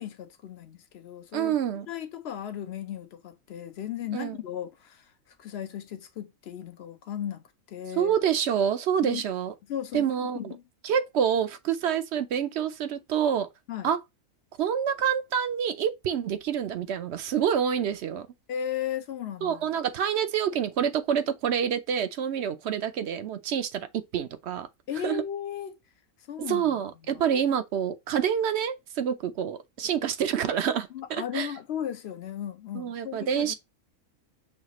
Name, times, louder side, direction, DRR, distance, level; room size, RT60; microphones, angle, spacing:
voice 1, 0.0-1.6 1.9-5.1 5.4-8.1 9.0-9.2 9.7-10.6 13.7-13.9 18.5-19.7 24.9-25.8 26.3-26.8 27.1-27.2 30.9-33.5, left 10 dB, 60° left, 0.8 m, -36 dB
voice 2, 1.3-1.9 4.1-4.4 8.0-9.5 9.9-10.5 10.8-13.5 13.8-14.0 14.6-18.3 19.4-24.7 25.0-25.2 26.4-31.5 32.7-33.5, right 8 dB, 60° right, 0.8 m, -27 dB
6.4 x 2.4 x 3.0 m
omnidirectional pair, 1.5 m